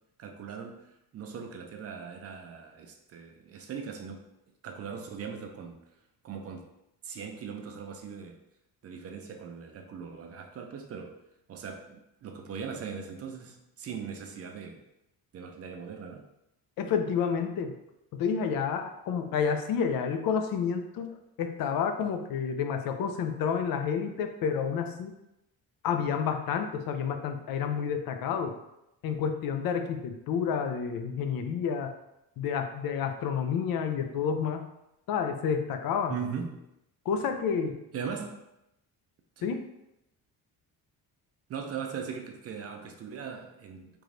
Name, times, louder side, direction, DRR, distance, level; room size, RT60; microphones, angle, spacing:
voice 1, 0.2-4.3 4.6-5.8 6.2-6.7 7.0-8.4 8.8-11.2 11.5-14.8 15.3-16.2 36.1-36.6 37.9-38.4 39.4-39.5 41.5-44.0, right 6 dB, 40° right, 4 dB, 0.4 m, -40 dB
voice 2, 16.8-17.7 18.1-25.1 25.8-28.5 29.0-31.9 32.4-34.7 35.1-36.2 37.1-37.8 39.4-39.6, left 6 dB, 65° left, 6 dB, 0.5 m, -30 dB
4.7 x 3.0 x 2.5 m, 0.85 s
cardioid pair, 175°, 38 cm